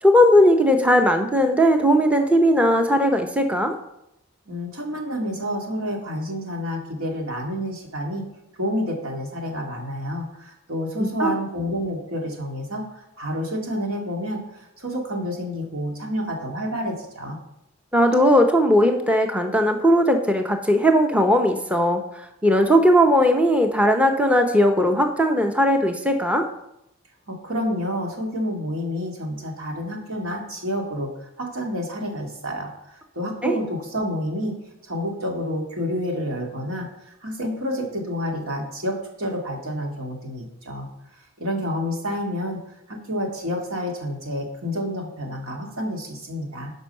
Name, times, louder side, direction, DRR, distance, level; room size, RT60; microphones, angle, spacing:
voice 1, 0.0-3.7 11.0-11.3 17.9-26.5 33.4-33.6, equal, 5° right, 4 dB, 0.6 m, -18 dB
voice 2, 4.5-8.2 8.6-17.4 27.3-34.5 34.8-36.9 37.2-40.9 41.4-42.6 42.9-46.7, equal, 85° right, 1 dB, 2.2 m, -29 dB
12.5 x 5.3 x 5.6 m, 0.85 s
head